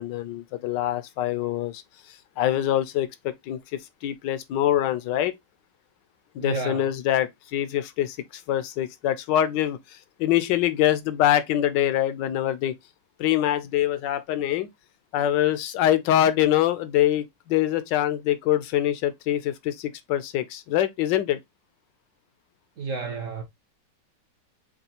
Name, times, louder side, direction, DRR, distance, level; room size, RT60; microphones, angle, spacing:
voice 1, 0.0-1.8 2.4-5.3 6.3-12.7 13.2-14.7 15.1-21.4, left 12 dB, 75° left, 1.2 m, -24 dB
voice 2, 6.4-6.9 22.8-23.4, right 4 dB, 60° right, 0.9 m, -31 dB
6.6 x 2.3 x 2.8 m
omnidirectional pair, 2.1 m